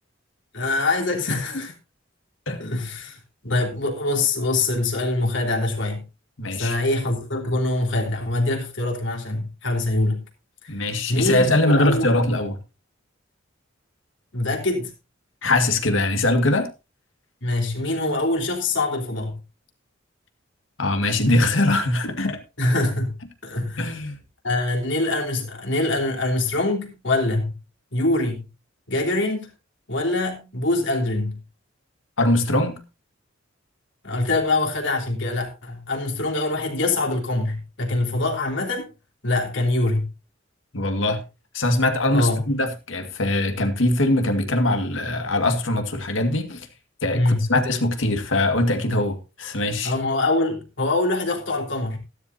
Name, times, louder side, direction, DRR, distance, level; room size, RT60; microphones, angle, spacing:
voice 1, 0.5-1.7 2.6-3.2 3.4-6.0 6.5-10.2 10.6-10.7 11.1-12.1 14.3-14.9 17.4-19.4 22.6-23.1 23.4-24.0 24.4-27.5 27.9-28.5 28.9-29.5 29.9-31.4 34.0-38.9 39.2-40.1 42.1-42.4 47.1-47.5 49.8-52.0, left 2 dB, 70° left, 3.2 m, -24 dB
voice 2, 6.4-6.8 10.7-12.6 15.4-16.7 20.8-22.4 23.8-24.2 32.2-32.8 40.7-41.2 41.5-46.7 47.0-49.9, left 1 dB, 85° left, 2.0 m, -22 dB
13.5 x 12.5 x 2.8 m
head